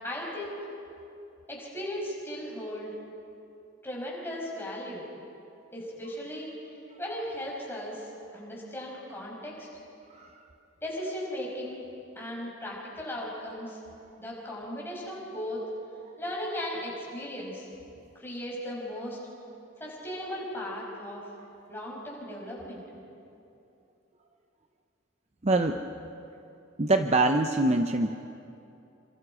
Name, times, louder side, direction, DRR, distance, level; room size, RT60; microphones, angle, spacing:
voice 1, 0.0-0.6 1.5-2.9 3.8-5.1 5.7-6.5 7.0-9.7 10.8-11.8 12.1-13.8 14.2-15.6 16.2-17.7 18.1-19.2 19.8-21.2 21.7-22.8, equal, 10° left, -3 dB, 5.5 m, -37 dB
voice 2, 25.4-25.9 26.8-28.2, right 2 dB, 30° right, 6 dB, 0.6 m, -24 dB
28.0 x 26.0 x 5.0 m, 2.7 s
head